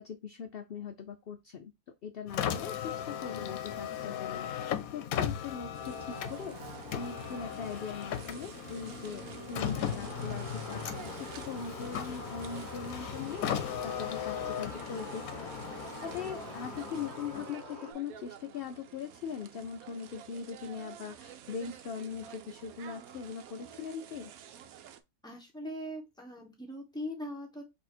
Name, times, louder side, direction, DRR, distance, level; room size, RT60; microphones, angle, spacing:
voice 1, 0.0-1.7 2.0-4.7 4.9-10.8 11.2-15.6 16.0-24.3, left 6 dB, 65° left, 0.6 m, -41 dB
Car, 2.3-17.7, left 9 dB, 80° left, 1.1 m, -37 dB
sound 1, 5.7-25.0, right 8 dB, 80° right, 1.1 m, -50 dB
sound 2, 10.0-17.9, right 1 dB, 35° right, 1.6 m, -46 dB
voice 2, 25.2-27.6, left 1 dB, 5° left, 1.2 m, -40 dB
4.3 x 2.8 x 4.2 m
omnidirectional pair, 1.5 m